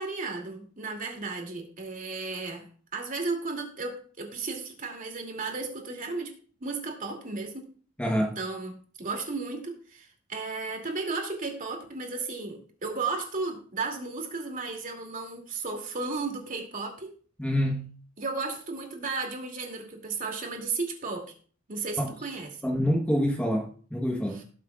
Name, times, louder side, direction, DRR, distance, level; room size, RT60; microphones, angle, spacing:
voice 1, 0.0-2.7 2.9-6.3 6.6-7.7 8.2-8.7 9.0-17.1 18.2-21.2 21.7-22.7 24.3-24.4, right 3 dB, 40° right, 2.5 m, -34 dB
voice 2, 8.0-8.4 17.4-17.9 22.0-22.1 22.6-24.4, equal, 5° left, 1.1 m, -26 dB
18.5 x 7.4 x 2.4 m
head